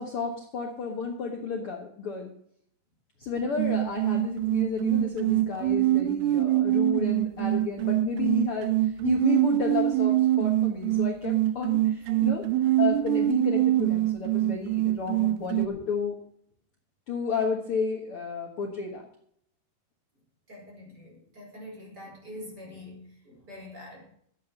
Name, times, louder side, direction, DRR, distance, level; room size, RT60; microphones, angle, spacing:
voice 1, 0.0-2.3 3.2-8.7 9.0-12.4 12.8-16.1 17.1-19.0, left 5 dB, 70° left, 1 dB, 1.3 m, -32 dB
sound 1, 3.6-15.7, right 14 dB, 80° right, 2.5 m, -25 dB
voice 2, 20.5-24.0, left 1 dB, 25° right, -2 dB, 5.3 m, -45 dB
13.5 x 8.7 x 6.5 m, 0.66 s
omnidirectional pair, 4.9 m